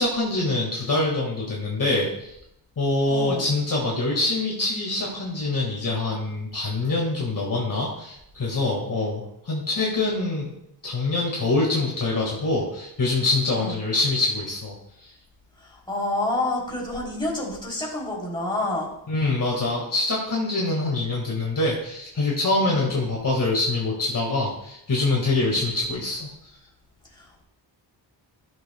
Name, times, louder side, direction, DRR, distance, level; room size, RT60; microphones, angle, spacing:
voice 1, 0.0-2.4 2.8-14.7 15.0-15.1 19.1-26.3, left 2 dB, 45° left, -3 dB, 1.8 m, -25 dB
voice 2, 3.1-3.5 13.5-13.7 15.6-18.9 22.6-22.9 25.3-25.6 27.1-27.4, left 2 dB, 10° left, -5 dB, 3.0 m, -29 dB
15.5 x 6.4 x 2.2 m, 0.78 s
wide cardioid pair, 160°, 44 cm